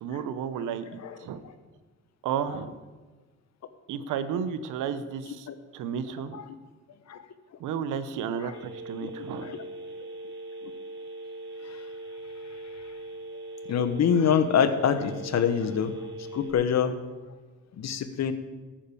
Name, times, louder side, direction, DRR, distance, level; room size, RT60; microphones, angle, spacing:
voice 1, 0.0-1.4 2.2-2.7 3.9-5.5 5.7-6.4 7.6-9.6, right 7 dB, 90° right, 13 dB, 1.0 m, -32 dB
voice 2, 1.0-1.3 5.5-5.6 6.3-6.5 7.1-7.2 8.4-8.6 9.0-9.1 9.4-9.6 11.6-11.8 13.7-16.9 17.8-18.3, left 7 dB, 60° left, 11 dB, 1.3 m, -26 dB
Telephone, 8.5-16.5, right 1 dB, 35° right, 2.2 m, -40 dB
13.5 x 8.9 x 7.0 m, 1.3 s
cardioid pair, 90°, 30 cm